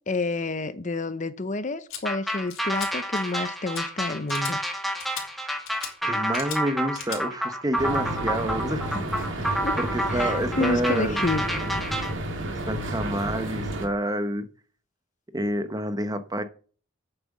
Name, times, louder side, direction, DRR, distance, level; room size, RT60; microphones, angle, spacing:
voice 1, 0.1-4.6 9.6-9.8 10.1-11.4, left 2 dB, 35° left, 0.6 m, -29 dB
sound 1, 1.9-2.0 2.5-2.9 3.1-3.4 3.7-3.8 4.3-4.5 5.0-5.2 5.7-5.9 6.3-6.6 6.9-7.2, left 8 dB, 75° left, 3.4 m, -37 dB
sound 2, 2.0-12.1, equal, ahead, 1.6 m, -29 dB
voice 2, 6.0-8.9 9.3-11.2 12.5-14.5 15.3-16.4, right 1 dB, 15° right, 0.8 m, -28 dB
sound 3, 7.8-13.9, right 1 dB, 60° right, 2.2 m, -31 dB
8.9 x 7.6 x 7.2 m
head